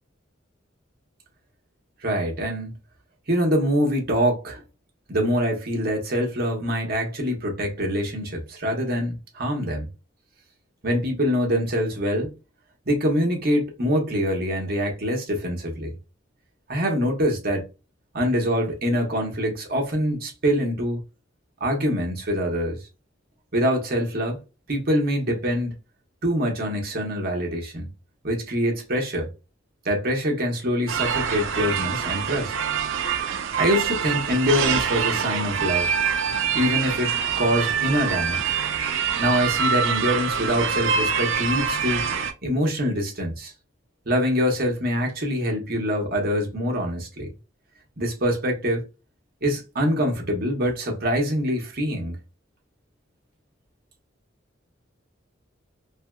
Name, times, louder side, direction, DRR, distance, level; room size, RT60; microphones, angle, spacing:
voice 1, 2.0-2.8 3.3-4.6 5.1-9.9 10.8-12.3 12.8-15.9 16.7-17.7 18.1-21.0 21.6-22.8 23.5-24.4 24.7-25.7 26.2-27.9 28.2-29.3 29.8-32.5 33.6-35.9 36.5-38.5 39.2-43.5 44.0-47.3 48.0-48.8 49.4-52.2, equal, 50° right, 1.3 m, -24 dB
sound 1, 30.9-42.3, right 7 dB, 75° right, 0.5 m, -25 dB
3.1 x 3.0 x 2.3 m
head